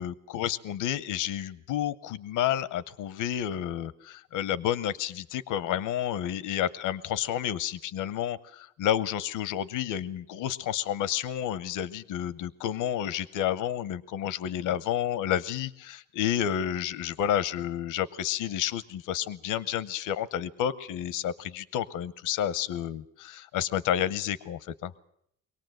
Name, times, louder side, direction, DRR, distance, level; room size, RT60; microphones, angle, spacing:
voice 1, 0.0-24.9, left 10 dB, 90° left, 17 dB, 0.8 m, -30 dB
24.0 x 18.0 x 7.8 m, 0.72 s
cardioid pair, 90°, 30 cm